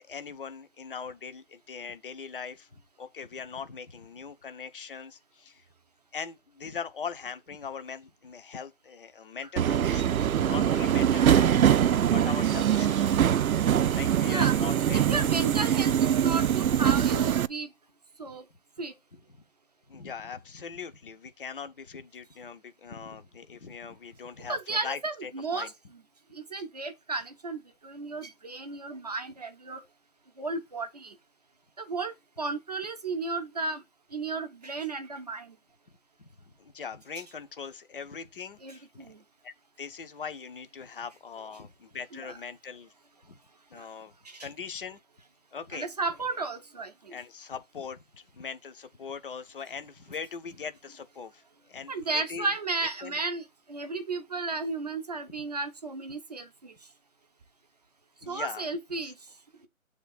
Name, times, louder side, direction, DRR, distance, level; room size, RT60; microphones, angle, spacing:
voice 1, 0.0-2.7 3.0-5.6 6.1-11.6 11.9-15.3 19.9-25.7 36.2-39.1 39.4-42.9 43.2-43.4 43.7-44.1 44.4-45.0 45.5-45.9 47.1-52.5 53.0-53.2 58.2-58.7 59.0-59.1, left 6 dB, 40° left, 0.7 m, -41 dB
Subway metro underground, 9.6-17.5, right 9 dB, 90° right, 0.5 m, -23 dB
voice 2, 14.9-17.7 18.2-18.4 18.8-18.9 24.5-25.7 26.3-29.8 30.4-31.1 31.8-33.8 34.1-35.5 38.6-39.2 42.1-42.4 43.8-43.9 44.2-44.5 45.7-47.1 51.9-53.4 53.7-56.7 58.3-59.1, right 3 dB, 30° right, 0.7 m, -34 dB
7.1 x 3.6 x 4.0 m
figure-of-eight pair, 160°, 41 cm